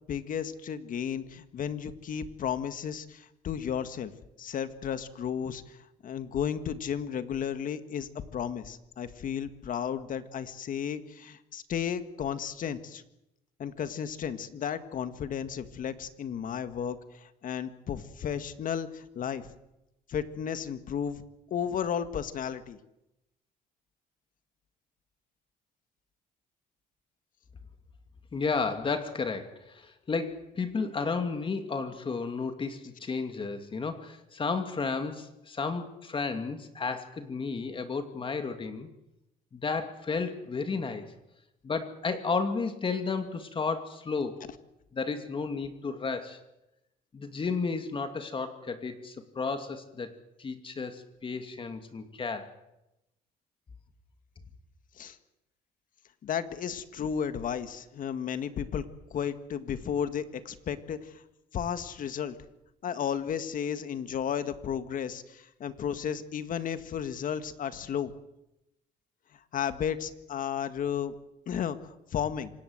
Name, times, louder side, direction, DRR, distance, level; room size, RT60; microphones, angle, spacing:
voice 1, 0.1-4.1 4.4-13.0 13.6-19.5 20.1-21.2 21.5-22.8 55.0-55.2 56.2-58.9 59.1-61.2 61.5-62.4 62.8-68.1 69.3-71.1 71.5-72.5, left 8 dB, 55° left, 11 dB, 1.8 m, -33 dB
voice 2, 28.3-38.9 39.5-41.1 41.6-44.4 44.9-46.4 47.1-52.5, left 4 dB, 30° left, 7 dB, 2.5 m, -33 dB
26.5 x 19.0 x 8.0 m, 0.90 s
cardioid pair, 110°, 17 cm